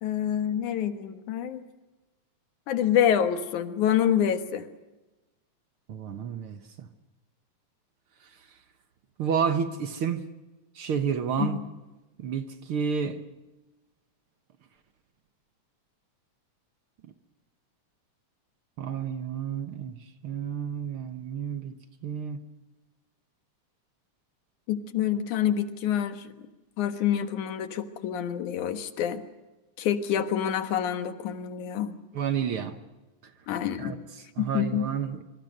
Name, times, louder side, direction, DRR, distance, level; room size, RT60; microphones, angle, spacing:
voice 1, 0.0-1.6 2.7-4.7 11.4-11.6 24.7-26.3 26.8-29.2 29.8-32.0 33.5-34.0 34.4-34.9, left 9 dB, 90° left, 2.9 m, -27 dB
voice 2, 5.9-6.9 9.2-10.2 10.8-11.6 12.2-13.2 18.8-20.0 20.2-21.7 22.0-22.4 32.1-32.8 33.8-33.9 34.4-35.2, right 7 dB, 60° right, 1.7 m, -30 dB
25.5 x 24.5 x 6.6 m
omnidirectional pair, 3.3 m